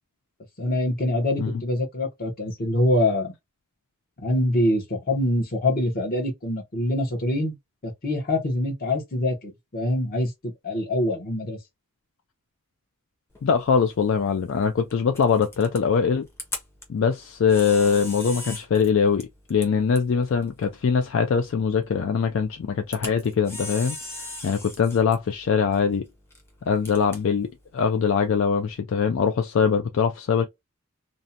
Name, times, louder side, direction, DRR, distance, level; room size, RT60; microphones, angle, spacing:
voice 1, 0.6-3.3 4.2-7.6 7.8-11.6, left 1 dB, 40° left, 0.8 m, -25 dB
Camera, 13.3-28.8, left 2 dB, 10° left, 0.7 m, -42 dB
voice 2, 13.4-16.2 16.9-26.0 26.7-30.4, left 6 dB, 60° left, 0.4 m, -22 dB
2.5 x 2.1 x 2.7 m
head